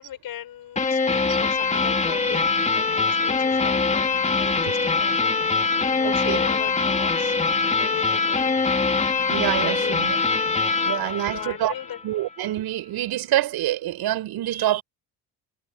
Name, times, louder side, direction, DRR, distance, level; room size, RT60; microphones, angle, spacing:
voice 1, 0.0-5.4 5.7-8.5 9.6-10.0 10.9-12.0, left 11 dB, 60° left, 7.7 m, -39 dB
sound 1, 0.8-12.0, left 4 dB, 15° left, 3.0 m, -23 dB
voice 2, 6.0-6.4 9.3-10.2 10.9-11.7 12.0-14.8, right 13 dB, 65° right, 7.0 m, -26 dB
cardioid pair, 100°, 40 cm